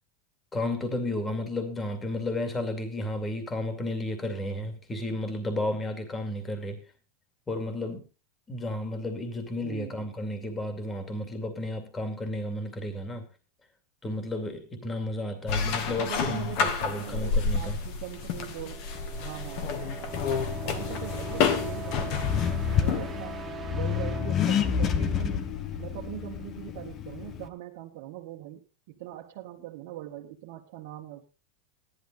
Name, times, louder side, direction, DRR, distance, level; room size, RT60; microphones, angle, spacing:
voice 1, 0.5-6.8 7.5-8.0 8.5-13.3 14.0-17.8, left 1 dB, 15° left, 2.4 m, -32 dB
voice 2, 9.6-10.1 15.9-18.8 19.2-20.2 20.6-23.4 23.7-25.5 25.8-31.2, right 13 dB, 60° right, 1.7 m, -41 dB
sound 1, 15.5-23.2, left 6 dB, 55° left, 2.0 m, -30 dB
sound 2, 18.3-26.0, right 7 dB, 10° right, 1.9 m, -42 dB
Accelerating revving vroom, 20.1-27.5, left 8 dB, 30° left, 1.1 m, -30 dB
14.0 x 11.5 x 3.9 m
supercardioid pair, 140°, 0 cm